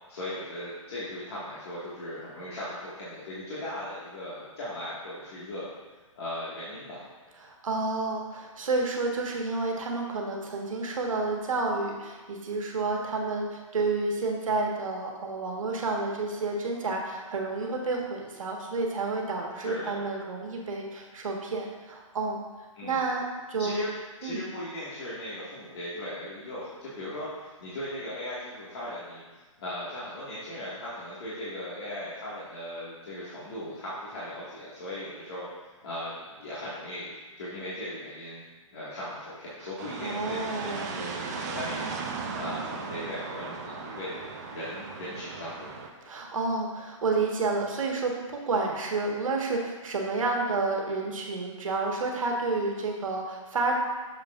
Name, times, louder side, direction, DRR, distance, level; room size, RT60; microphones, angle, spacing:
voice 1, 0.1-5.7 6.2-7.1 19.6-20.0 22.8-23.1 23.6-23.9 24.2-29.2 29.6-35.5 35.8-38.4 38.7-45.7, left 1 dB, 50° left, -10 dB, 1.9 m, -38 dB
voice 2, 7.4-22.4 22.8-23.8 24.2-24.4 40.0-41.0 46.1-53.8, right 3 dB, 75° right, 0 dB, 1.6 m, -30 dB
sound 1, 39.8-45.9, right 4 dB, 30° right, 0.6 m, -37 dB
8.0 x 6.8 x 2.5 m, 1.3 s
hypercardioid pair, 160°, 17 cm